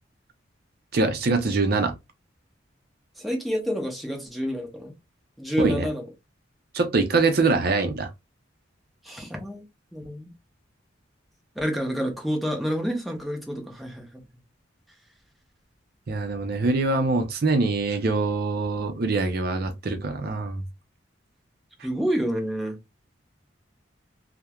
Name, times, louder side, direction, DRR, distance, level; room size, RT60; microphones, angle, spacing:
voice 1, 0.9-1.9 5.6-5.9 6.7-8.1 16.1-20.6, right 3 dB, 55° right, 0.5 m, -24 dB
voice 2, 3.2-4.9 5.4-6.0 9.0-9.6 9.9-10.3 11.6-14.2 21.8-22.8, equal, ahead, 0.6 m, -28 dB
3.0 x 2.1 x 2.3 m
head